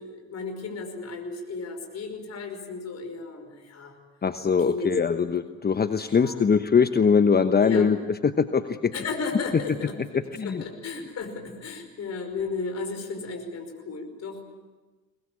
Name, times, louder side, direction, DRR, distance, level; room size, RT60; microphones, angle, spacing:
voice 1, 0.0-4.0 4.6-5.3 6.1-6.4 7.6-7.9 8.9-9.9 10.4-14.6, left 4 dB, 50° left, 4 dB, 5.4 m, -34 dB
voice 2, 4.2-8.0 8.2-8.9 10.3-10.6, left 6 dB, 30° left, 10 dB, 1.1 m, -22 dB
23.0 x 21.0 x 8.7 m, 1.3 s
hypercardioid pair, 60°, 33 cm